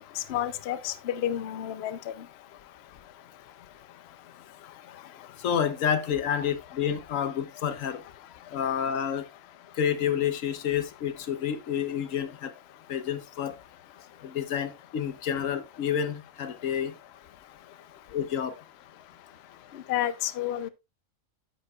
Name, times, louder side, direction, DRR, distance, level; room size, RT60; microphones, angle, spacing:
voice 1, 0.2-2.0 19.9-20.7, left 12 dB, 60° left, 0.8 m, -30 dB
voice 2, 5.4-8.0 8.5-9.2 9.8-12.5 12.9-13.5 14.2-16.9 18.1-18.5, left 8 dB, 85° left, 1.2 m, -29 dB
9.4 x 9.1 x 2.3 m
omnidirectional pair, 1.3 m